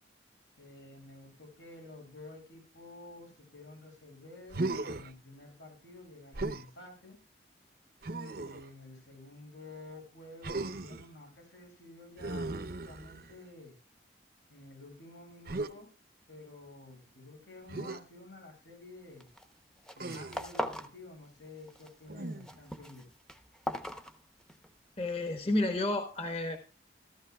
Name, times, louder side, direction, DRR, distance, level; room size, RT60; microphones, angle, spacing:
voice 1, 0.6-7.2 8.3-13.8 14.5-15.9 16.3-19.3 20.0-23.1, left 2 dB, 90° left, 2 dB, 7.9 m, -51 dB
Human voice, 4.5-5.1 6.3-6.7 8.0-8.7 10.4-11.1 12.2-13.4 15.5-15.7 17.7-18.0 20.0-20.5 22.1-22.6, right 2 dB, 55° right, 0.7 m, -37 dB
sound 1, 19.2-19.5 19.8-21.0 21.3-21.9 22.2-24.7, left 1 dB, 5° left, 0.7 m, -39 dB
voice 2, 25.0-26.6, left 2 dB, 30° left, 6 dB, 1.2 m, -31 dB
14.5 x 14.0 x 2.3 m, 0.33 s
head